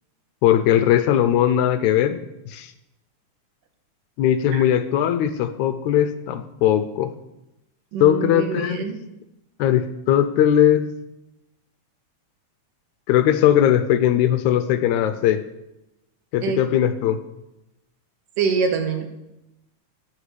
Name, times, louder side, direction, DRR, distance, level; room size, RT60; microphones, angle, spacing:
voice 1, 0.4-2.2 2.5-2.7 4.2-7.1 8.0-8.9 9.6-10.9 13.1-15.4 16.3-17.2, left 11 dB, 80° left, 10 dB, 1.9 m, -19 dB
voice 2, 7.9-9.0 16.4-16.6 18.4-19.1, right 5 dB, 85° right, 6 dB, 2.9 m, -24 dB
14.5 x 8.7 x 5.0 m, 0.92 s
omnidirectional pair, 3.6 m